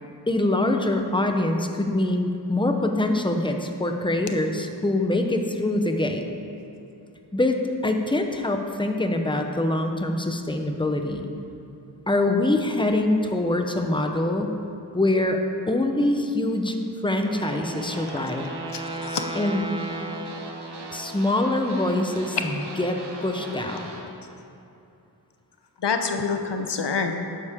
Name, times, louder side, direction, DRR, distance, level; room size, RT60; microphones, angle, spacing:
voice 1, 0.3-6.3 7.3-11.3 12.1-14.6 14.9-15.4 15.7-16.8 17.0-18.5 19.3-19.6 20.9-23.8, left 1 dB, 10° left, 4 dB, 0.9 m, -24 dB
sound 1, 17.2-24.0, right 2 dB, 80° right, 1.4 m, -39 dB
Wind instrument woodwind instrument, 17.5-21.2, right 2 dB, 10° right, 0.7 m, -36 dB
voice 2, 18.7-19.2 25.8-27.3, left 5 dB, 90° left, 5 dB, 0.8 m, -27 dB
11.5 x 9.7 x 3.7 m, 2.7 s
wide cardioid pair, 55°, 41 cm